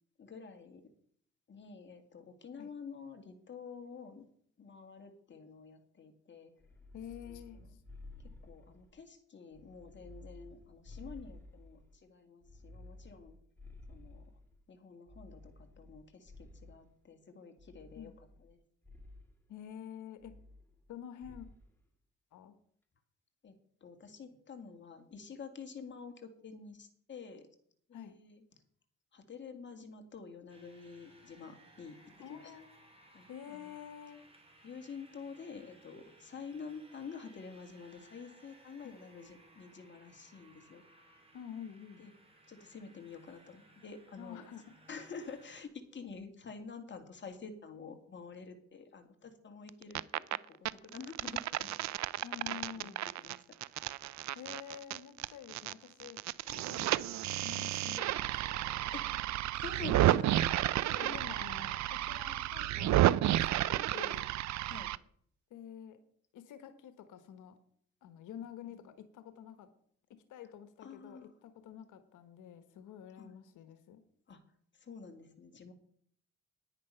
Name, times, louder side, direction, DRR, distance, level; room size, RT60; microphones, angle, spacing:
voice 1, 0.2-0.9 1.5-4.3 4.6-6.5 7.3-7.7 8.2-13.4 13.9-14.4 14.7-18.1 18.4-18.6 23.4-27.5 27.9-28.4 29.1-32.0 32.3-32.6 33.1-33.8 34.6-40.8 42.0-42.1 42.5-44.4 44.9-51.8 52.4-52.9 53.2-53.4 58.9-60.4 61.0-61.2 64.6-64.9 68.6-68.9 70.8-71.3 73.2-73.3 74.3-74.4 74.7-75.7, left 5 dB, 40° left, 5 dB, 2.1 m, -49 dB
sound 1, 6.6-9.0 9.5-12.0 12.4-14.6 15.1-16.9 17.6-18.5 18.8-19.3 20.2-20.9 21.2-21.7, left 2 dB, 5° left, 2.2 m, -54 dB
voice 2, 6.9-7.8 17.9-18.1 19.5-20.4 20.9-21.5 22.3-22.6 27.9-28.1 32.2-32.7 33.3-34.2 38.8-39.0 41.3-42.0 44.2-44.7 52.2-53.1 54.3-58.6 60.9-64.3 65.5-66.0 66.3-67.6 68.0-69.7 70.1-74.0, left 9 dB, 80° left, 11 dB, 1.3 m, -49 dB
sound 2, 30.5-45.6, right 2 dB, 20° right, 3.7 m, -62 dB
sound 3, 49.7-50.4 50.7-55.7 56.0-65.0, right 14 dB, 65° right, 0.5 m, -32 dB
9.9 x 9.9 x 5.6 m, 0.63 s
cardioid pair, 90°, 30 cm